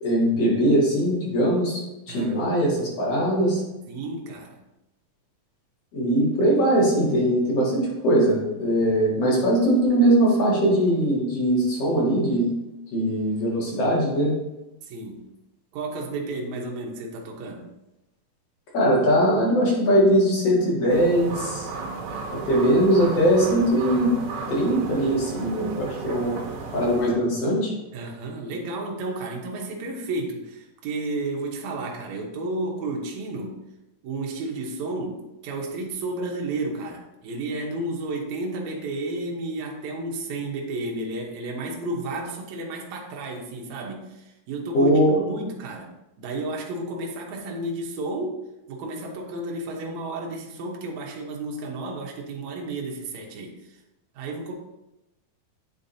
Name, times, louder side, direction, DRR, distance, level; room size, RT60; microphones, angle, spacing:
voice 1, 0.0-1.8 2.1-3.6 5.9-12.5 12.9-14.4 18.7-21.7 22.5-24.1 24.5-26.4 26.7-27.7 44.7-45.1, right 1 dB, 55° left, -5 dB, 2.8 m, -21 dB
voice 2, 3.9-4.6 14.8-15.2 15.7-17.7 27.9-33.6 34.0-45.9 46.2-48.4 48.7-53.8 54.2-54.5, right 2 dB, 70° right, -1 dB, 2.1 m, -32 dB
sound 1, 20.9-27.1, right 4 dB, 85° right, 2.7 m, -34 dB
9.1 x 4.7 x 2.7 m, 0.93 s
omnidirectional pair, 3.7 m